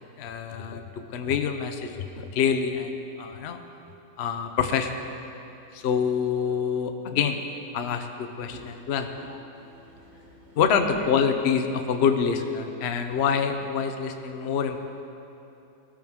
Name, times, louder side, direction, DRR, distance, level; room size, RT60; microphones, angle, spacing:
voice 1, 0.0-2.9 3.2-3.6 4.2-4.9 5.7-7.4 7.7-9.1 10.6-14.8, left 7 dB, 90° left, 6 dB, 0.5 m, -26 dB
voice 2, 9.0-10.6 10.9-11.1, right 3 dB, 50° right, -4 dB, 3.0 m, -42 dB
19.5 x 14.0 x 3.6 m, 2.8 s
omnidirectional pair, 2.3 m